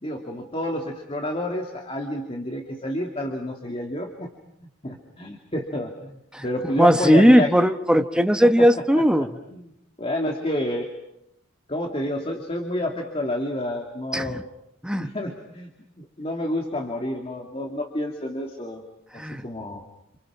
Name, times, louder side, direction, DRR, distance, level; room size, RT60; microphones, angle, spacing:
voice 1, 0.0-4.3 4.8-7.5 9.5-9.6 10.0-10.9 11.7-14.4 15.0-15.7 16.0-18.8 19.1-19.8, left 1 dB, 30° left, 2 dB, 2.5 m, -29 dB
voice 2, 6.3-9.3 14.1-14.4 14.8-15.1 19.1-19.5, equal, 5° right, 7 dB, 1.0 m, -18 dB
28.5 x 28.0 x 6.0 m, 0.82 s
head